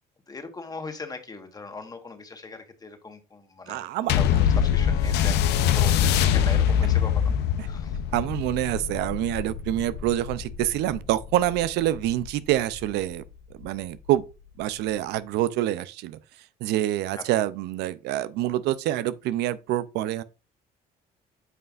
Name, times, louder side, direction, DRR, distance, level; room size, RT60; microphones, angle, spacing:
voice 1, 0.3-3.9 4.1-7.2 7.6-8.0 17.1-17.2, left 3 dB, 20° left, 1.4 m, -39 dB
voice 2, 3.7-4.2 8.1-13.2 13.6-14.2 14.6-16.2 16.6-20.2, right 13 dB, 85° right, 0.5 m, -26 dB
sound 1, 4.1-12.9 13.6-13.7, left 9 dB, 80° left, 0.7 m, -24 dB
9.4 x 5.5 x 2.5 m
cardioid pair, 110°, 17 cm